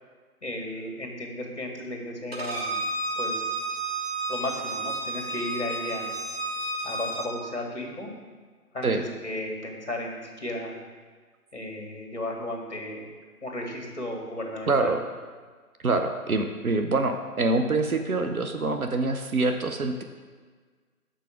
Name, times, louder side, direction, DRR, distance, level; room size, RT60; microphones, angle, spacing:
voice 1, 0.4-2.8 3.2-3.6 4.3-6.1 6.8-8.1 8.7-10.7 11.5-13.1 13.4-14.9, left 1 dB, 50° left, 1 dB, 1.5 m, -34 dB
Bowed string instrument, 2.3-7.3, right 2 dB, 40° right, 0.9 m, -31 dB
voice 2, 14.7-15.0 15.8-20.0, right 3 dB, 65° right, 5 dB, 0.7 m, -25 dB
6.3 x 4.1 x 6.0 m, 1.5 s
figure-of-eight pair, 160°, 46 cm